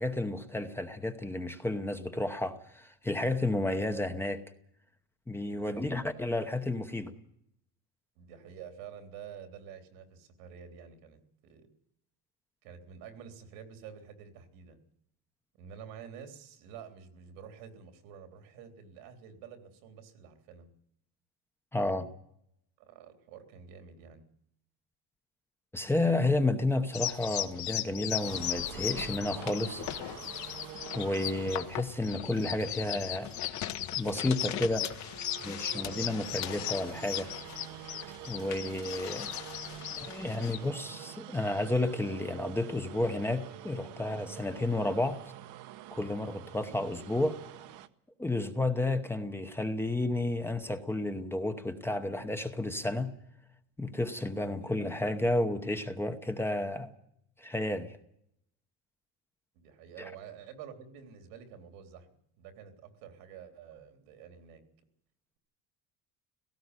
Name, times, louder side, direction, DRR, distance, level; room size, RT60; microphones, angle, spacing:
voice 1, 0.0-4.4 5.3-7.1 21.7-22.1 25.7-29.8 30.9-33.3 34.0-34.9 35.4-37.3 38.3-39.3 40.0-45.2 45.9-47.4 48.2-53.1 53.8-56.9 57.4-58.0 60.0-60.1, left 2 dB, 5° left, 7 dB, 0.9 m, -31 dB
voice 2, 5.5-5.9 8.2-11.7 12.6-14.8 15.6-20.7 22.8-24.2 54.5-54.8 59.5-62.1 62.3-64.6, right 7 dB, 85° right, 7 dB, 3.6 m, -49 dB
sound 1, 26.9-40.7, left 12 dB, 50° left, 1.3 m, -37 dB
sound 2, 28.2-47.9, right 13 dB, 55° right, 1.1 m, -47 dB
17.5 x 15.5 x 9.7 m, 0.72 s
cardioid pair, 165°, 35 cm